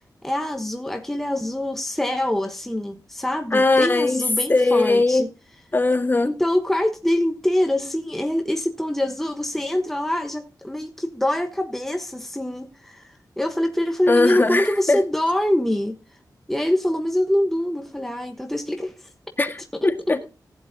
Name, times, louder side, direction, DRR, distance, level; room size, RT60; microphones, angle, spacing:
voice 1, 0.2-5.3 6.2-16.0 16.5-19.1, left 1 dB, 5° left, 1.1 m, -24 dB
voice 2, 3.5-4.2 4.5-5.2 5.7-6.3 14.1-15.0 19.4-20.2, left 2 dB, 30° left, 1.6 m, -19 dB
15.5 x 10.5 x 2.7 m
wide cardioid pair, 110°, 7 cm